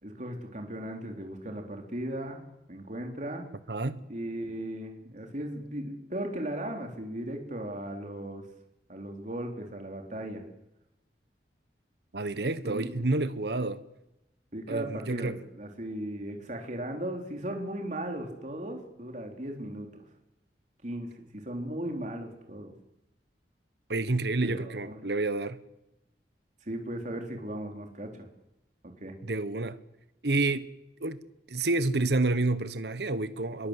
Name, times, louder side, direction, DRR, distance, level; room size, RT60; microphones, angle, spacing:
voice 1, 0.0-2.4 2.7-3.5 4.1-8.5 8.9-10.5 12.6-12.9 14.5-20.0 20.8-22.7 24.4-25.0 26.6-28.3 29.0-29.2, right 1 dB, 45° right, 3.8 m, -37 dB
voice 2, 3.7-4.0 12.1-13.8 14.7-15.4 23.9-25.6 29.2-29.8 30.2-30.7 31.0-31.2 31.5-33.7, right 2 dB, 70° right, 1.2 m, -29 dB
27.0 x 22.5 x 8.2 m
head